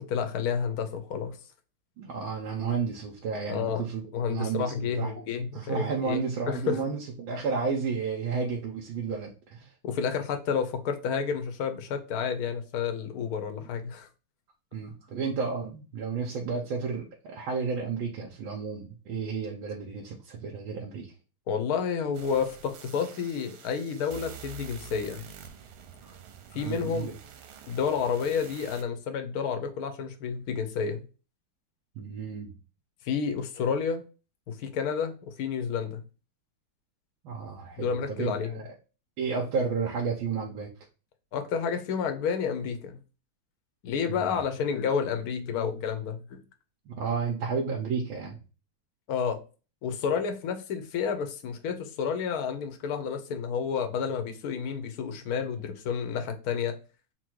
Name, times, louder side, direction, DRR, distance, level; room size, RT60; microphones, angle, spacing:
voice 1, 0.0-1.4 3.5-6.8 9.8-14.1 21.5-25.3 26.5-27.1 27.7-31.0 33.0-34.0 34.5-36.0 37.8-38.6 41.3-43.0 43.8-46.4 49.1-49.4 49.8-56.7, left 6 dB, 60° left, 1.0 m, -30 dB
voice 2, 2.0-9.7 13.6-13.7 14.7-21.1 26.0-26.1 26.5-27.1 32.0-32.5 37.2-38.7 39.2-40.7 44.1-44.3 46.9-48.4, right 5 dB, 70° right, 1.6 m, -32 dB
sound 1, 22.1-28.8, right 7 dB, 90° right, 1.6 m, -47 dB
4.4 x 2.2 x 4.5 m
omnidirectional pair, 2.3 m